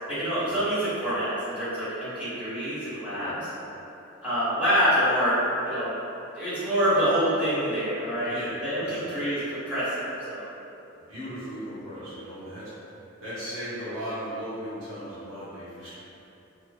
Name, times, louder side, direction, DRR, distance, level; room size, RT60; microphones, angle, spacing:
voice 1, 0.1-3.3 4.2-5.9 6.3-8.4 8.6-10.5, equal, 5° right, -14 dB, 1.1 m, -26 dB
voice 2, 11.1-12.7 13.2-16.0, equal, 85° right, -12 dB, 1.3 m, -37 dB
2.9 x 2.5 x 2.4 m, 2.8 s
head